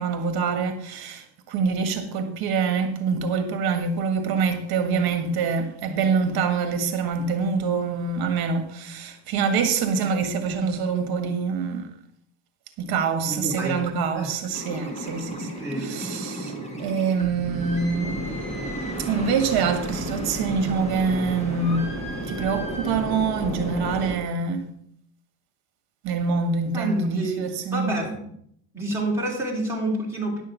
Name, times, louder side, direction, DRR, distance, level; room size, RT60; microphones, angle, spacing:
voice 1, 0.0-11.9 12.8-18.2 19.0-21.9 22.3-24.6 26.0-28.0, right 5 dB, 50° right, 1.7 m, -25 dB
voice 2, 13.2-13.8 14.1-14.3 15.6-15.9 16.5-16.7 26.7-28.3 28.7-30.4, right 1 dB, 5° right, 2.9 m, -28 dB
sound 1, 14.5-24.2, right 1 dB, 15° left, 1.7 m, -32 dB
10.5 x 6.4 x 6.0 m
cardioid pair, 155°, 49 cm